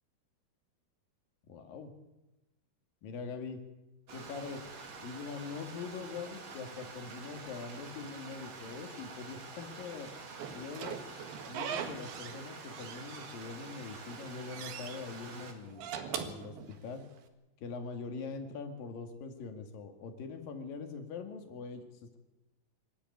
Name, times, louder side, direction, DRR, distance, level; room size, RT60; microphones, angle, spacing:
voice 1, 1.5-1.9 3.0-3.6 4.1-4.6 5.0-10.1 10.5-11.0 11.5-15.9 16.1-17.0 17.6-21.9, left 5 dB, 65° left, 6 dB, 3.9 m, -43 dB
Stream, 4.1-15.5, right 4 dB, 45° right, 3.4 m, -47 dB
Slam / Squeak, 10.4-12.4 12.7-13.7 14.1-15.0 15.6-17.2, right 7 dB, 80° right, 3.7 m, -41 dB
25.0 x 14.0 x 9.6 m, 1.0 s
omnidirectional pair, 4.4 m